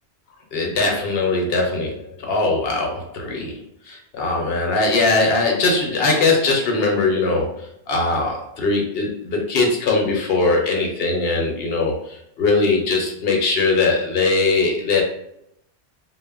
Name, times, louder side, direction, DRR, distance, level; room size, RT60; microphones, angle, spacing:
voice 1, 0.5-3.6 3.9-15.0, left 3 dB, 65° left, 1 dB, 0.8 m, -20 dB
2.1 x 2.1 x 3.5 m, 0.76 s
omnidirectional pair, 1.2 m